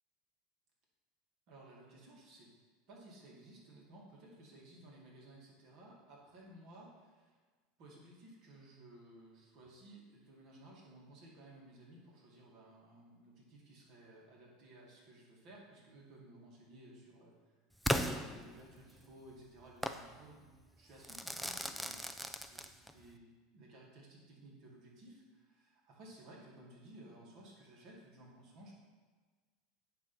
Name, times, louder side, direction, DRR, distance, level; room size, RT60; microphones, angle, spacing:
voice 1, 1.5-2.5 2.9-7.4 7.8-17.4 17.9-20.5 20.8-22.0 22.3-28.7, right 1 dB, 55° right, -3 dB, 2.2 m, -57 dB
Crackle / Fireworks, 17.8-19.0 19.8-20.1 21.0-23.0, equal, 5° right, 0.4 m, -37 dB
9.0 x 3.1 x 5.8 m, 1.4 s
hypercardioid pair, 100°, 0 cm